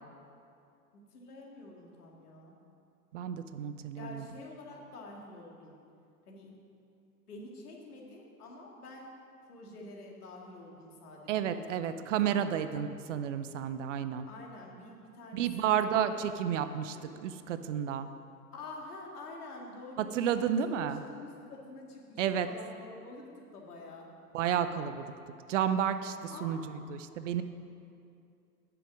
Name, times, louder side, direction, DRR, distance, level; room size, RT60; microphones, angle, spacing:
voice 1, 1.1-2.6 4.0-5.8 6.3-6.5 7.3-9.1 9.4-12.4 14.3-16.4 16.9-17.1 18.5-24.1 26.3-26.8, left 2 dB, 70° left, -1 dB, 2.1 m, -48 dB
voice 2, 3.1-4.3 11.3-14.2 15.3-17.0 17.2-18.1 20.1-21.0 22.2-22.5 24.3-25.1 25.5-27.4, right 9 dB, 50° right, 11 dB, 0.6 m, -31 dB
8.8 x 7.0 x 6.1 m, 2.5 s
figure-of-eight pair, 100°, 47 cm